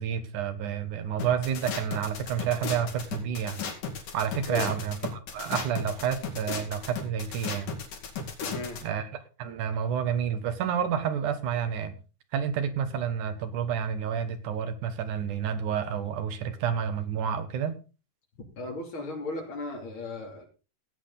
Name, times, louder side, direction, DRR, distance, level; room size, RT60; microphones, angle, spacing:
voice 1, 0.0-3.6 4.1-7.7 8.8-9.1 9.4-11.9 12.3-17.7, right 8 dB, 75° right, 9 dB, 2.8 m, -29 dB
sound 1, 1.2-8.8, left 5 dB, 80° left, 3.8 m, -35 dB
voice 2, 8.4-8.8 18.6-20.4, left 2 dB, 40° left, 2 dB, 3.6 m, -36 dB
16.0 x 8.6 x 4.0 m, 0.33 s
omnidirectional pair, 3.6 m